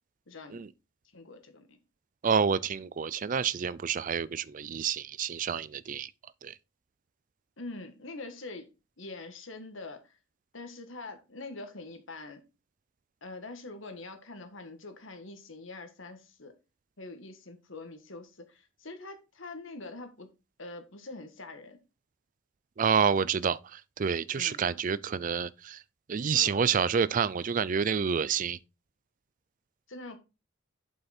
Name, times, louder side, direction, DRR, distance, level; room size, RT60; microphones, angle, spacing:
voice 1, 0.3-0.6 1.1-1.8 7.6-8.7 9.0-10.2 10.5-12.4 13.2-16.5 17.0-20.3 20.6-21.8 24.3-24.6 26.3-26.7 29.9-30.2, left 2 dB, 65° left, 1.6 m, -44 dB
voice 2, 2.2-6.1 6.4-6.5 22.8-25.8 26.1-28.6, right 6 dB, 40° right, 0.4 m, -28 dB
7.7 x 5.6 x 4.3 m
head